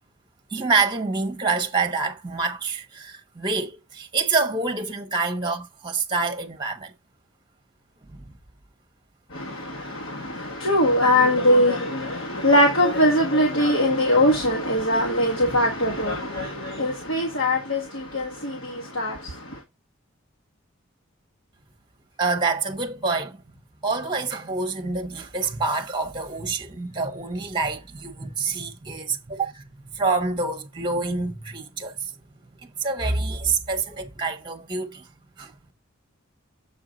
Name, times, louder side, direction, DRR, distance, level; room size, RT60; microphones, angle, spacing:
voice 1, 0.5-6.9 8.1-8.2 15.5-15.6 22.2-23.4 23.8-29.6 29.9-32.1 32.8-35.1 35.4-35.5, right 4 dB, 20° right, 1.1 m, -26 dB
voice 2, 9.3-19.6, left 1 dB, 70° left, 1.4 m, -22 dB
7.2 x 4.7 x 3.9 m
head